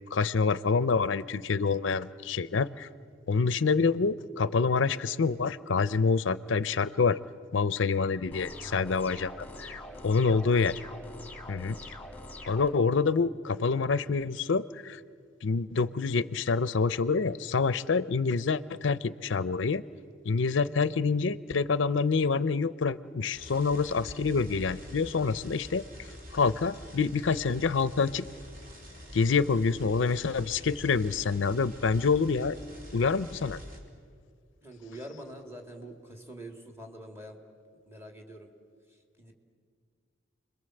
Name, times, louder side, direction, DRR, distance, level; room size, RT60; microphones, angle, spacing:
voice 1, 0.1-2.9 3.3-7.2 7.5-10.8 11.5-11.8 12.5-15.0 15.4-19.8 20.2-25.8 26.3-28.2 29.1-32.6 32.9-33.6, left 4 dB, 75° left, 16 dB, 0.6 m, -27 dB
sound 1, 8.3-12.7, left 1 dB, 10° left, 1.8 m, -44 dB
voice 2, 9.5-10.3 34.6-37.4 37.9-38.5 38.9-39.3, right 1 dB, 15° right, 3 dB, 2.6 m, -46 dB
sound 2, 23.3-33.8, equal, 50° right, 4.2 m, -47 dB
29.5 x 22.0 x 7.8 m, 2.1 s
head